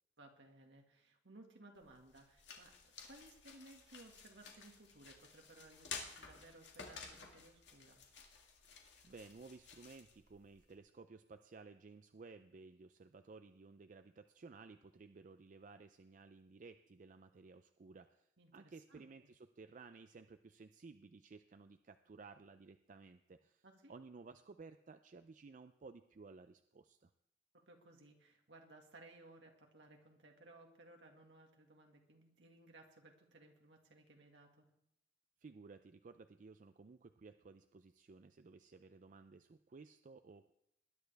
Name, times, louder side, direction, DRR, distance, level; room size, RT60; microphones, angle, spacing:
voice 1, 0.2-8.0 18.4-19.1 23.6-24.0 27.5-34.7, right 2 dB, 70° right, 2 dB, 2.0 m, -61 dB
sound 1, 1.8-10.8, left 5 dB, 70° left, 2.1 m, -53 dB
voice 2, 8.8-23.6 23.9-27.1 35.4-40.5, right 4 dB, 45° right, 9 dB, 0.4 m, -57 dB
20.5 x 10.5 x 3.4 m, 0.80 s
head